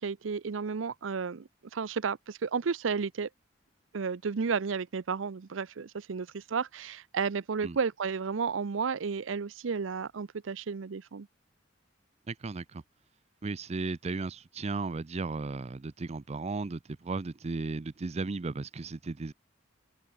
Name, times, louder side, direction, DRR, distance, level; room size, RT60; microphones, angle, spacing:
voice 1, 0.0-3.3 3.9-11.3, right 5 dB, 85° right, 0.6 m, -32 dB
voice 2, 12.3-12.8 13.4-19.3, right 3 dB, 35° right, 0.5 m, -35 dB
head